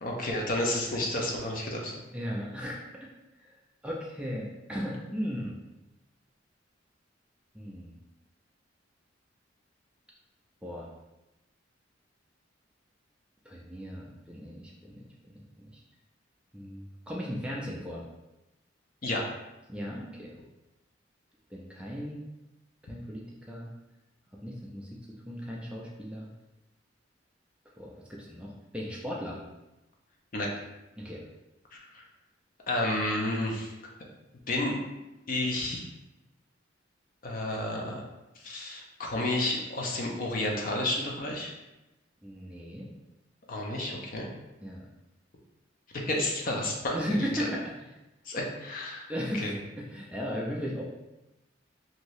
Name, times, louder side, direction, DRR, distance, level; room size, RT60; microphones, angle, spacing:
voice 1, 0.0-2.0 19.0-19.3 30.3-30.5 31.9-32.0 32.7-33.7 34.5-34.8 35.3-35.8 37.2-38.0 38.4-41.5 43.5-44.3 45.9-47.5 48.3-49.1 49.3-49.6, left 1 dB, 45° left, 0 dB, 0.5 m, -31 dB
voice 2, 2.1-3.1 3.8-5.6 7.5-7.9 10.6-10.9 13.4-15.8 16.5-18.0 19.7-20.3 21.5-22.2 22.9-23.7 24.4-26.3 27.8-29.4 31.0-31.2 42.2-42.9 44.6-44.8 46.9-47.7 49.1-50.8, equal, 5° right, -3 dB, 0.3 m, -36 dB
2.7 x 2.6 x 3.1 m, 0.99 s
head